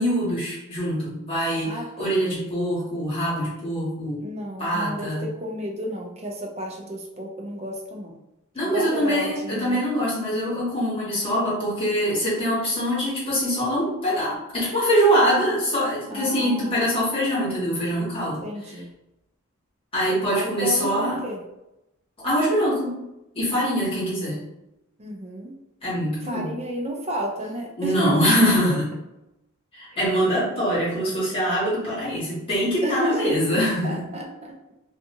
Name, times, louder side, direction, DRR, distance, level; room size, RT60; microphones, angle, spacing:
voice 1, 0.0-4.2 4.6-5.2 8.5-18.4 18.7-18.8 19.9-21.2 22.2-22.9 23.3-24.4 25.8-26.5 27.8-28.9 29.7-34.0, equal, 25° left, -8 dB, 1.3 m, -23 dB
voice 2, 1.6-2.2 4.2-8.1 8.6-9.8 16.1-16.8 18.4-18.9 20.3-21.4 23.5-24.0 25.0-25.5 26.3-28.1 32.8-33.3 33.8-34.5, equal, 30° right, 0 dB, 0.5 m, -32 dB
2.6 x 2.4 x 2.7 m, 0.90 s
head